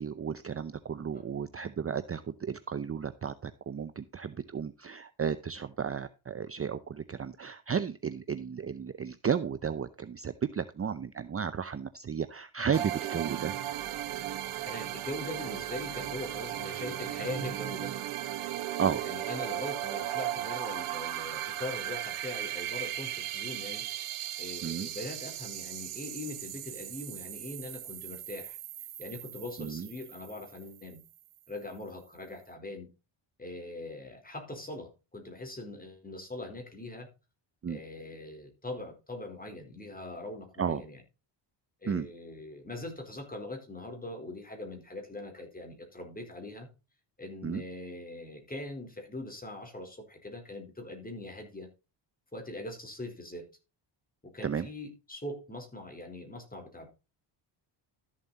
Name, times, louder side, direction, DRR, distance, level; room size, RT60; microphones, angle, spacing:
voice 1, 0.0-13.5 18.8-19.0 24.6-24.9 29.6-29.9 37.6-37.8 40.6-40.8 41.9-42.1 47.4-47.6 54.4-54.7, right 7 dB, 30° right, 13 dB, 0.7 m, -33 dB
sound 1, 12.7-31.2, right 12 dB, 85° right, 1.4 m, -37 dB
voice 2, 14.6-17.9 19.0-24.1 24.4-28.6 29.0-31.0 31.5-32.9 33.4-37.1 37.7-41.0 41.8-46.7 47.2-51.7 52.3-53.5 54.2-56.9, left 2 dB, 15° left, 3 dB, 4.1 m, -42 dB
13.0 x 7.4 x 4.1 m, 0.30 s
cardioid pair, 95°, 49 cm